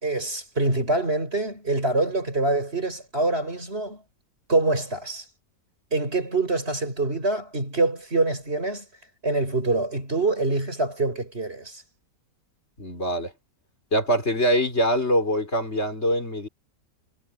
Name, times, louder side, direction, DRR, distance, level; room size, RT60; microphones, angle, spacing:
voice 1, 0.0-4.0 4.5-5.2 5.9-8.8 9.2-11.8, right 2 dB, 40° right, 6.4 m, -25 dB
voice 2, 12.8-13.3 13.9-16.5, equal, 45° left, 5.1 m, -23 dB
omnidirectional pair, 1.6 m